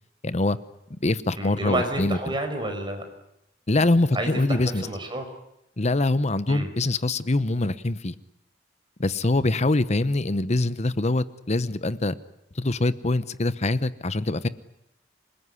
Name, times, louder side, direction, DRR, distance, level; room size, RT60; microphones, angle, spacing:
voice 1, 0.2-0.6 1.0-2.2 3.7-4.9 5.8-8.1 9.0-12.1 12.6-14.5, left 2 dB, 40° left, 15 dB, 0.9 m, -24 dB
voice 2, 1.4-3.0 4.1-5.3 6.5-6.7, right 1 dB, 25° right, 5 dB, 5.1 m, -30 dB
27.0 x 20.0 x 9.8 m, 0.83 s
head